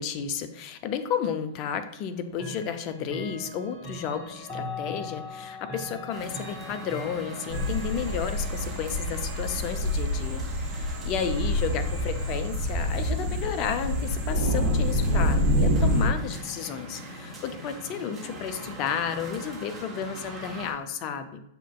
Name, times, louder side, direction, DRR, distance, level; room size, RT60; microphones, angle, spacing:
voice 1, 0.0-21.4, left 7 dB, 40° left, 9 dB, 0.4 m, -32 dB
Chime / Clock, 2.3-13.2, left 1 dB, 20° left, 0.9 m, -42 dB
sound 1, 6.1-20.7, equal, 10° right, 1.1 m, -42 dB
sound 2, 7.5-16.1, equal, 50° right, 1.0 m, -27 dB
6.4 x 2.4 x 2.3 m, 0.74 s
figure-of-eight pair, 100°, 0 cm